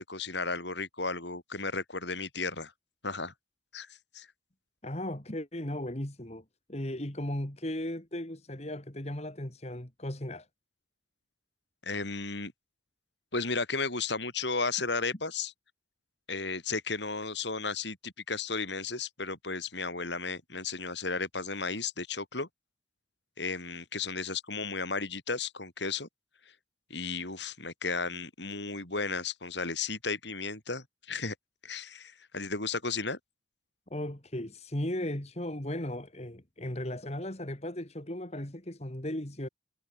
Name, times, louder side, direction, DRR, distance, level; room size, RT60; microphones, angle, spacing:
voice 1, 0.0-2.7 3.0-3.3 3.7-4.3 11.8-12.5 13.3-15.5 16.3-22.5 23.4-26.1 26.9-31.3 31.6-33.2, left 4 dB, 65° left, 6.3 m, -34 dB
voice 2, 4.8-10.5 33.9-39.5, left 1 dB, 35° left, 2.4 m, -36 dB
head